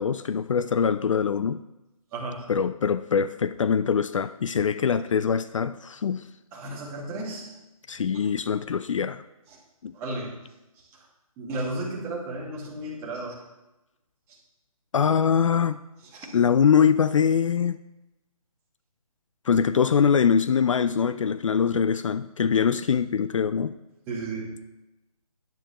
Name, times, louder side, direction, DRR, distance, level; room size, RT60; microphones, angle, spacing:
voice 1, 0.0-1.6 2.5-6.3 7.9-9.2 9.8-9.9 14.9-15.8 16.3-17.8 19.5-23.7, left 7 dB, 60° left, 0.4 m, -23 dB
voice 2, 2.1-2.5 6.5-7.5 7.9-8.2 9.5-9.6 9.9-10.3 10.8-11.1 11.4-13.4 14.3-14.4 16.1-16.3 24.1-24.6, right 2 dB, 15° right, 2.0 m, -34 dB
11.5 x 10.5 x 3.0 m
hypercardioid pair, 160°, 19 cm